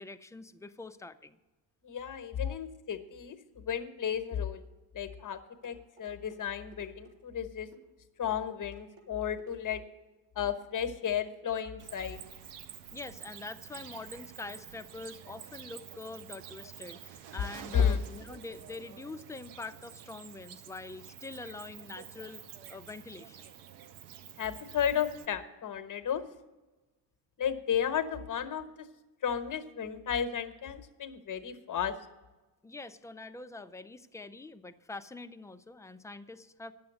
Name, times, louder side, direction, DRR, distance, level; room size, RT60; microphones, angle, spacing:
voice 1, 0.0-1.4 2.4-2.6 12.9-23.5 32.6-36.7, left 3 dB, 5° left, 9 dB, 0.4 m, -45 dB
voice 2, 1.8-4.6 4.9-7.7 8.2-9.8 10.3-12.2 17.7-18.0 24.4-26.2 27.4-28.7 29.2-31.9, left 8 dB, 40° left, 8 dB, 1.0 m, -33 dB
sound 1, 5.6-6.4 6.7-7.2 7.7-7.9 8.3-9.1 9.4-9.8 10.4-10.6 11.0-11.1, right 4 dB, 60° right, 3.9 m, -58 dB
Cricket, 11.8-25.3, right 9 dB, 90° right, 0.8 m, -48 dB
9.3 x 7.1 x 7.8 m, 1.2 s
supercardioid pair, 75°, 50 cm